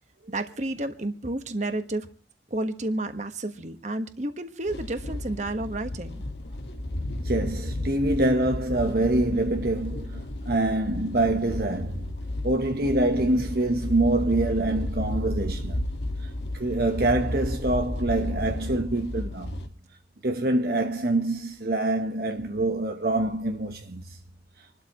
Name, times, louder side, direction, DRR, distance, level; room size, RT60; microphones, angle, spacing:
voice 1, 0.3-2.1 2.5-6.2, right 1 dB, 40° right, 1.4 m, -31 dB
sound 1, 4.6-19.7, left 1 dB, 80° left, 1.8 m, -33 dB
voice 2, 7.2-12.1 12.4-15.9 16.2-19.6 20.2-24.0, right 2 dB, 55° right, 1.1 m, -25 dB
28.0 x 12.5 x 3.1 m
head